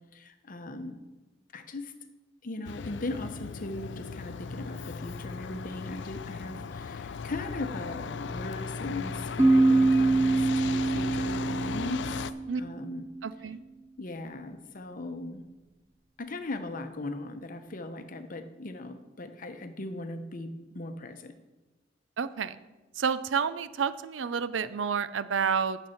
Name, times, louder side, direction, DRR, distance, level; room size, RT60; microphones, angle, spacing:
voice 1, 0.1-1.0 1.5-1.9 2.4-12.1 12.6-13.1 14.0-15.4 16.2-21.3, left 2 dB, 50° left, 8 dB, 0.9 m, -38 dB
Truck, 2.6-12.3, left 5 dB, 70° left, 0.4 m, -37 dB
sound 1, 9.4-13.0, right 2 dB, 15° right, 0.4 m, -24 dB
voice 2, 13.2-13.6 22.2-22.6 23.0-25.8, right 6 dB, 90° right, 15 dB, 0.5 m, -29 dB
9.4 x 7.3 x 5.8 m, 1.1 s
head